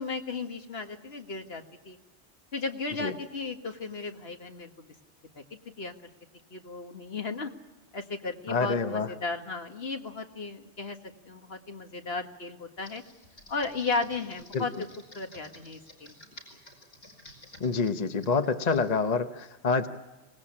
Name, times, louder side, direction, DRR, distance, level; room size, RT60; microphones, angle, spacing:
voice 1, 0.0-2.0 2.5-4.9 5.4-5.9 6.5-7.5 7.9-11.0 11.3-13.0 13.5-14.7 15.1-16.2, left 4 dB, 60° left, 5 dB, 1.9 m, -35 dB
voice 2, 8.5-9.1 14.5-14.6 17.6-19.9, left 4 dB, 40° left, 8 dB, 1.0 m, -27 dB
Computer keyboard, 12.8-18.9, left 1 dB, 85° left, 5.5 m, -52 dB
25.5 x 19.0 x 8.7 m, 1.1 s
omnidirectional pair, 1.2 m